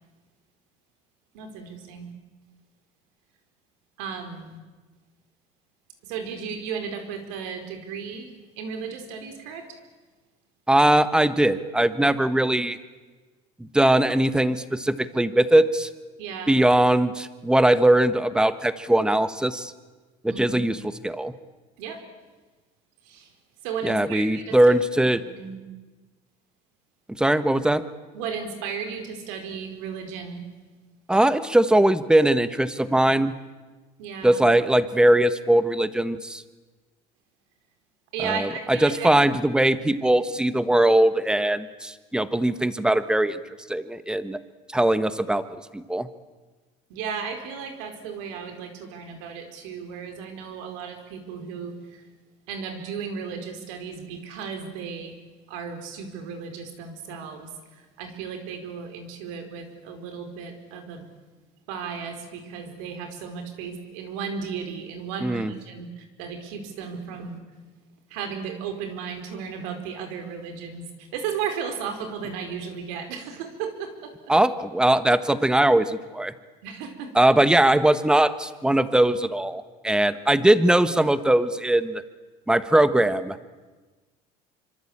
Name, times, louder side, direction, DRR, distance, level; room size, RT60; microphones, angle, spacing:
voice 1, 1.3-2.1 4.0-4.6 6.0-9.8 16.2-16.6 20.3-20.6 21.8-22.0 23.0-23.3 23.6-25.5 28.1-30.4 34.0-34.4 38.1-39.2 46.9-52.1 52.5-55.2 55.5-61.1 61.7-67.4 68.1-74.1 76.6-77.1, right 6 dB, 90° right, 7 dB, 4.8 m, -35 dB
voice 2, 10.7-12.8 13.6-15.9 16.5-19.7 20.2-20.8 21.0-21.3 23.8-25.2 27.2-27.8 31.1-33.3 34.2-36.4 38.2-43.4 43.7-44.4 44.7-45.4 45.7-46.1 65.2-65.5 74.3-76.3 77.1-82.0 82.5-83.4, right 1 dB, 5° right, 12 dB, 1.3 m, -20 dB
27.0 x 25.0 x 8.8 m, 1.3 s
cardioid pair, 125°, 16 cm